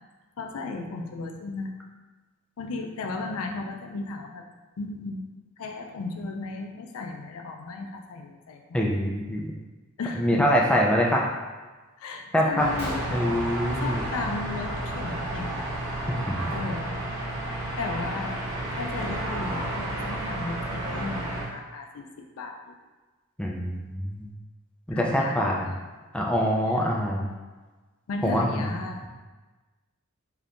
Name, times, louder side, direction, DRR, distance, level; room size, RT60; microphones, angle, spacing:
voice 1, 0.4-1.7 2.6-4.4 4.8-5.2 5.6-8.8 10.0-10.4 12.0-13.3 13.8-15.7 16.5-17.0 17.8-18.4 18.8-22.1 22.4-22.7 24.9-25.9 28.1-29.0, left 3 dB, 80° left, 3 dB, 0.4 m, -35 dB
voice 2, 8.7-9.5 10.2-11.3 12.3-12.8 13.1-14.0 16.3-16.6 23.4-24.3 24.9-25.7 26.1-27.3 28.2-28.8, equal, 5° left, -2 dB, 0.3 m, -24 dB
sound 1, 12.6-21.5, right 1 dB, 65° right, 0.8 m, -31 dB
Gunshot gunfire, 12.8-14.4 14.7-15.1 15.3-15.6 16.3-16.5 17.1-17.2 17.6-19.2, equal, 30° left, 1.0 m, -43 dB
3.5 x 2.7 x 2.5 m, 1.3 s
head